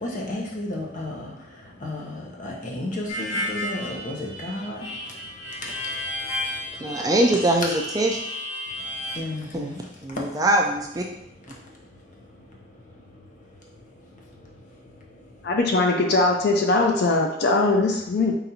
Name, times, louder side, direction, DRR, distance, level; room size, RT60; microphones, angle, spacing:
voice 1, 0.0-1.2 1.8-2.0 2.4-4.8 9.2-9.8, left 1 dB, 40° left, -2 dB, 0.9 m, -32 dB
Harmonica, 3.1-9.2, left 1 dB, 90° left, 0.9 m, -32 dB
voice 2, 6.8-8.2 9.5-9.7 10.0-11.1, right 1 dB, 20° right, 1 dB, 0.4 m, -22 dB
voice 3, 15.4-18.3, left 2 dB, 55° left, 2 dB, 0.4 m, -21 dB
3.9 x 2.6 x 4.2 m, 0.82 s
head